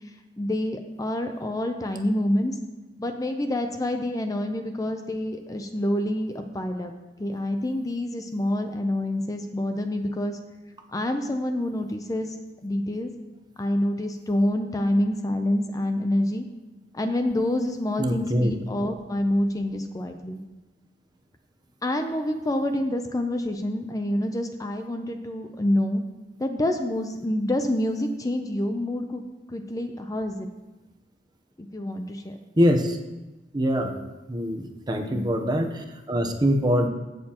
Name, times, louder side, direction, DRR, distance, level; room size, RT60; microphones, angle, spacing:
voice 1, 0.4-2.6 3.0-6.9 7.2-10.4 10.9-12.3 12.6-13.1 13.6-16.4 16.9-20.4 21.8-26.0 26.4-29.2 29.5-30.5 31.6-32.4 34.9-35.3, left 1 dB, 20° left, 6 dB, 0.5 m, -27 dB
voice 2, 18.0-18.5 32.6-33.0 33.5-33.9 34.3-36.9, equal, 25° right, 4 dB, 0.8 m, -23 dB
16.0 x 6.6 x 2.9 m, 1.1 s
head